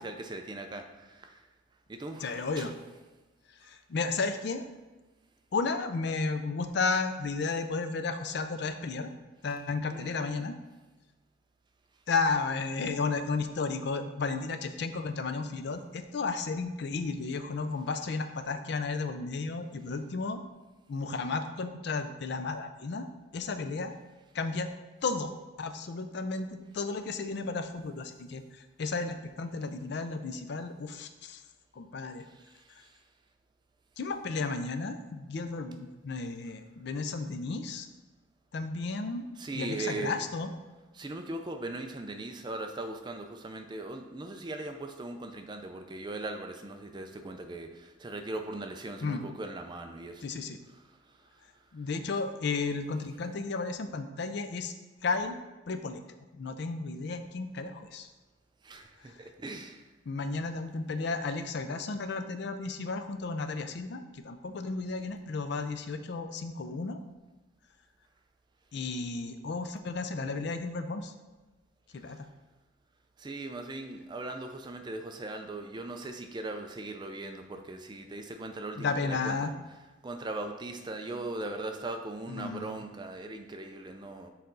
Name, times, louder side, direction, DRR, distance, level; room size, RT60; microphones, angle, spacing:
voice 1, 0.0-1.3 1.9-2.7 9.8-10.5 39.4-40.2 40.9-50.2 58.6-59.8 73.2-79.4 80.0-84.3, right 2 dB, 20° right, 5 dB, 0.4 m, -39 dB
voice 2, 2.2-2.7 3.7-4.7 5.5-9.1 9.4-10.5 12.1-20.4 20.9-23.9 24.3-24.7 25.0-28.4 28.8-31.4 31.7-32.2 34.0-37.9 38.5-39.3 39.5-40.5 49.0-49.2 50.2-50.6 51.7-54.7 55.0-55.4 55.7-56.0 56.3-58.1 59.0-59.1 60.1-67.0 68.7-71.1 71.9-72.2 78.8-79.5 82.3-82.7, left 4 dB, 55° left, 9 dB, 0.4 m, -33 dB
6.6 x 4.1 x 3.9 m, 1.2 s
head